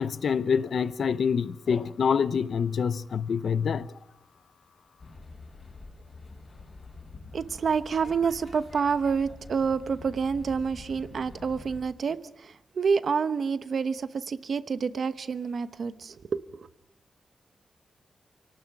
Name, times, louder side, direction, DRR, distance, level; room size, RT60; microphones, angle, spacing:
voice 1, 0.0-3.9, left 6 dB, 65° left, 0.7 m, -26 dB
sound 1, 5.0-11.8, left 3 dB, 35° left, 5.1 m, -46 dB
voice 2, 7.3-16.7, right 5 dB, 55° right, 1.0 m, -28 dB
27.5 x 18.5 x 6.1 m
wide cardioid pair, 180°, 0 cm